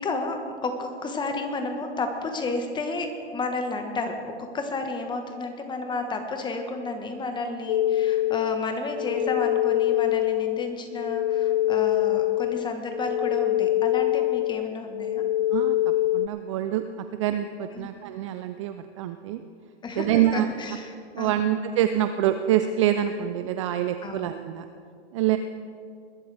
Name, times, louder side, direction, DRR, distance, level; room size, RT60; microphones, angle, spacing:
voice 1, 0.0-15.2 17.7-17.9 19.8-20.1 20.3-21.5 24.0-24.3, left 3 dB, 15° left, 5 dB, 1.4 m, -32 dB
sound 1, 7.7-16.3, left 14 dB, 45° left, 0.4 m, -24 dB
voice 2, 15.5-19.4 20.0-20.5 21.1-24.7 25.1-25.4, right 11 dB, 30° right, 9 dB, 0.4 m, -26 dB
21.5 x 12.0 x 3.4 m, 2.3 s
hypercardioid pair, 125°, 34 cm